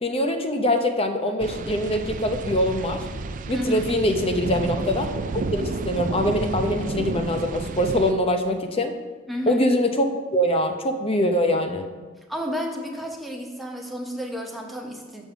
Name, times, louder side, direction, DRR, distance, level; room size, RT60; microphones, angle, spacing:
voice 1, 0.0-3.0 3.5-5.1 5.3-8.9 9.5-11.9, left 1 dB, 30° left, 6 dB, 0.7 m, -23 dB
sound 1, 1.4-8.1, right 3 dB, 40° right, 0.3 m, -31 dB
voice 2, 3.5-3.9 9.3-9.6 12.3-15.2, equal, ahead, 1 dB, 0.9 m, -31 dB
7.2 x 5.3 x 6.0 m, 1.4 s
head